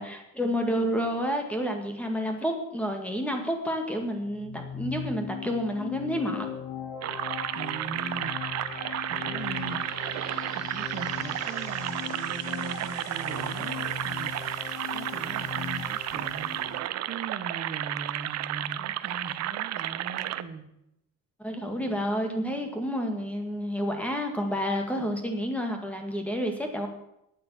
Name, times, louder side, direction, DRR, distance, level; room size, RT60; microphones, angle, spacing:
voice 1, 0.0-6.5 21.4-26.9, equal, 5° left, 3 dB, 1.8 m, -30 dB
sound 1, 4.2-16.8, left 8 dB, 80° left, 2.0 m, -39 dB
sound 2, 7.0-20.4, right 13 dB, 55° right, 0.6 m, -32 dB
voice 2, 7.5-8.4 9.1-9.8 10.5-14.3 14.9-16.5 17.0-20.7, right 4 dB, 30° right, 4 dB, 1.2 m, -40 dB
9.8 x 8.4 x 8.5 m, 0.82 s
cardioid pair, 160°, 31 cm